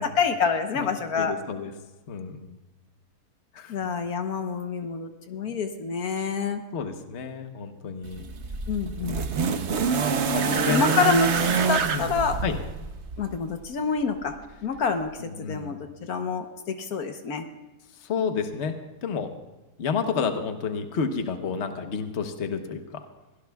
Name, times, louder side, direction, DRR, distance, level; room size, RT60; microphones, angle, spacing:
voice 1, 0.0-1.3 3.7-6.6 8.7-9.5 10.5-12.4 13.2-17.4, left 5 dB, 70° left, 6 dB, 1.4 m, -27 dB
voice 2, 1.2-1.7 2.1-2.5 3.5-3.8 6.7-8.2 8.9-9.1 10.2-11.0 11.4-11.5 11.9-12.1 12.4-12.5 15.2-15.7 18.0-18.7 19.0-19.3 19.8-23.0, left 5 dB, 50° left, 6 dB, 1.2 m, -30 dB
sound 1, 8.0-13.3 14.3-14.4, right 6 dB, 55° right, 1.0 m, -26 dB
22.5 x 16.5 x 2.3 m, 1.1 s
omnidirectional pair, 1.6 m